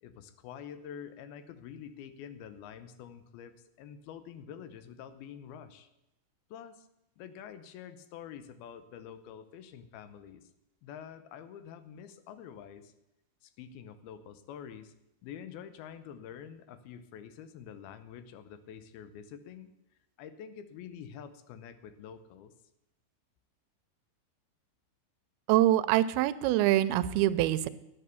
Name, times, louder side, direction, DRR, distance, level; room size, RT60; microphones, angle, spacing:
voice 1, 0.0-5.9 6.5-6.9 7.2-10.4 10.8-12.9 13.4-14.9 15.2-19.7 20.2-22.5, left 8 dB, 80° left, 11 dB, 2.7 m, -47 dB
voice 2, 25.5-27.7, right 14 dB, 85° right, 15 dB, 2.5 m, -25 dB
11.0 x 8.9 x 6.9 m, 0.87 s
omnidirectional pair, 4.4 m